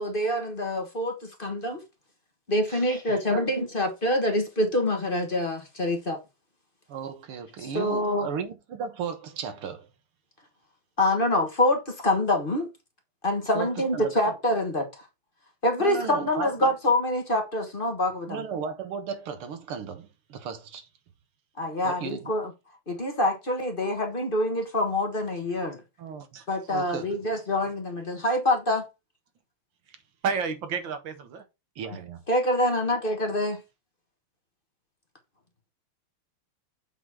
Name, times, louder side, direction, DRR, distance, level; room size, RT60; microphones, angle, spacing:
voice 1, 0.0-1.8 2.5-6.2 7.6-8.3 11.0-12.7 13.2-15.1 15.6-18.4 21.6-22.5 22.9-25.8 26.5-28.8 32.3-33.6, left 1 dB, 30° left, 1.2 m, -26 dB
voice 2, 2.7-3.5 6.9-9.9 13.5-14.3 15.8-16.7 18.3-20.9 21.8-22.3 26.0-26.3 26.7-27.1 31.8-32.2, right 6 dB, 80° right, 2.1 m, -35 dB
voice 3, 30.2-31.4 32.0-32.1, right 6 dB, 65° right, 1.9 m, -30 dB
7.5 x 4.0 x 4.7 m
omnidirectional pair, 2.4 m